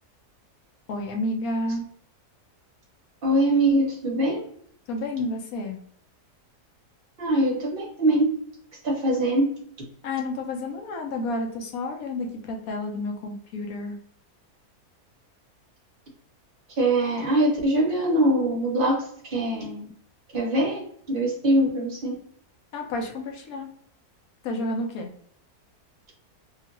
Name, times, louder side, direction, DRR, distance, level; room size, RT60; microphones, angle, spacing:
voice 1, 0.9-1.8 4.9-5.8 10.0-14.0 22.7-23.7 24.4-25.1, left 2 dB, 70° left, 3 dB, 1.1 m, -30 dB
voice 2, 3.2-4.4 7.2-8.4 8.8-9.5 16.8-19.9 20.3-20.8 21.1-22.1, right 1 dB, 45° right, -2 dB, 0.8 m, -23 dB
2.9 x 2.4 x 2.9 m, 0.63 s
omnidirectional pair, 1.7 m